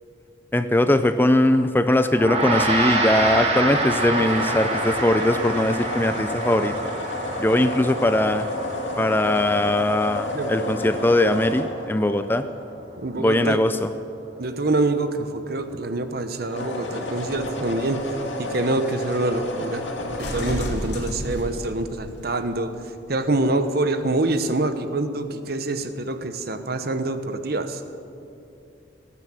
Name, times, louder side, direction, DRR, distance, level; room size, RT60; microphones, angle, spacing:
voice 1, 0.5-6.7 7.4-8.5 9.0-12.5 13.2-13.9, left 1 dB, 10° left, 10 dB, 0.4 m, -20 dB
Gong, 2.1-11.7, right 2 dB, 35° right, 1.9 m, -27 dB
sound 1, 3.7-12.9 16.4-20.6, left 2 dB, 75° left, 2.7 m, -31 dB
voice 2, 10.3-10.7 13.0-13.6 14.4-19.9 20.2-22.8 23.1-27.8, right 2 dB, 55° right, 9 dB, 1.0 m, -26 dB
sound 2, 17.0-22.4 23.2-23.3, left 1 dB, 60° left, 2.6 m, -34 dB
18.0 x 9.8 x 7.6 m, 2.7 s
head